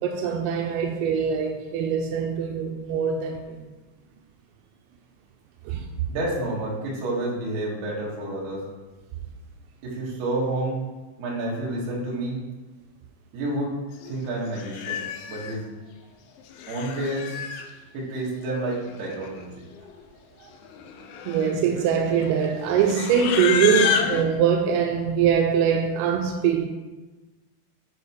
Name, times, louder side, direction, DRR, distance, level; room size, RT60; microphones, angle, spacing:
voice 1, 0.0-3.7 5.7-5.9 21.3-26.7, right 7 dB, 85° right, 3.3 m, -23 dB
voice 2, 6.1-8.6 9.8-10.8 11.2-12.4 13.3-13.7 14.1-15.0 15.3-15.7 16.7-17.3 17.9-19.6, right 2 dB, 55° right, 3.8 m, -29 dB
Livestock farm animals working animals, 14.0-14.2 14.6-15.5 16.4-17.7 18.7-18.8 19.0-19.4 19.7-20.0 20.7-24.2, left 7 dB, 85° left, 2.7 m, -29 dB
10.5 x 4.9 x 4.7 m
omnidirectional pair, 5.9 m